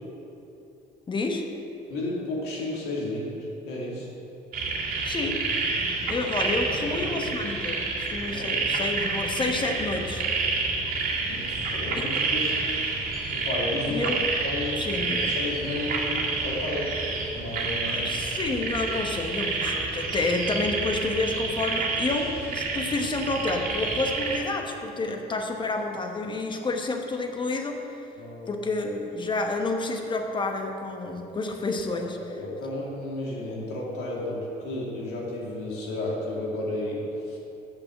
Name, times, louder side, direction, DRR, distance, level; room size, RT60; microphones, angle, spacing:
voice 1, 1.1-1.5 5.0-5.4 6.1-10.2 11.9-12.1 13.9-14.2 14.8-15.3 17.9-27.8 28.5-32.2, left 3 dB, 30° left, 4 dB, 1.1 m, -29 dB
voice 2, 1.9-4.1 6.7-7.2 8.3-8.6 11.3-12.6 13.3-14.0 14.4-17.0 17.3-18.3 28.2-28.5 31.9-32.0 32.3-37.4, left 1 dB, 80° left, -4 dB, 2.4 m, -33 dB
sound 1, 4.5-24.4, right 3 dB, 60° right, 1.9 m, -29 dB
8.4 x 6.1 x 7.5 m, 2.9 s
cardioid pair, 110°, 17 cm